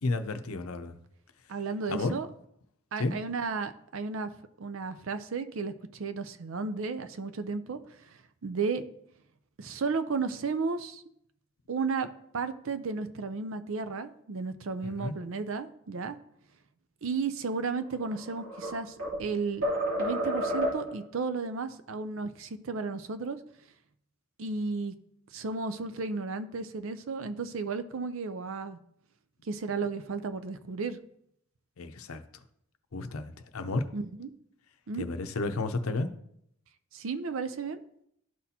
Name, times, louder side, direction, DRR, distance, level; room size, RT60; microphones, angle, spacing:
voice 1, 0.0-0.9 1.9-2.1 3.0-3.1 14.8-15.1 31.8-32.2 32.9-33.8 35.0-36.1, left 2 dB, 80° left, 8 dB, 0.6 m, -32 dB
voice 2, 1.5-2.3 2.9-4.3 4.6-7.8 8.4-8.8 9.6-11.0 11.7-12.1 12.3-16.2 17.0-19.6 20.0-23.4 24.4-24.9 25.3-28.8 29.5-31.0 33.9-34.3 34.9-35.1 36.9-37.8, right 4 dB, 70° right, 11 dB, 0.5 m, -33 dB
sound 1, 17.9-19.3 19.6-21.0, equal, 90° right, 2.6 m, -30 dB
12.5 x 4.1 x 2.8 m, 0.72 s
head